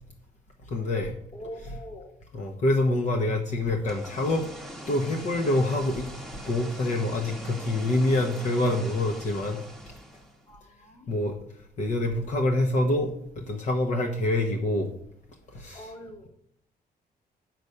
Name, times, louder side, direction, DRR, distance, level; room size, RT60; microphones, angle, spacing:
voice 1, 0.6-1.1 2.3-4.5 4.9-6.1 6.4-9.6 11.1-14.9 15.5-15.9, left 1 dB, 45° left, 3 dB, 0.9 m, -26 dB
voice 2, 1.3-2.1 10.4-11.1 15.7-16.3, left 1 dB, 25° left, 5 dB, 1.4 m, -43 dB
sound 1, 3.7-10.5, equal, ahead, 1.0 m, -42 dB
8.3 x 6.1 x 6.6 m, 0.74 s
cardioid pair, 165°, 17 cm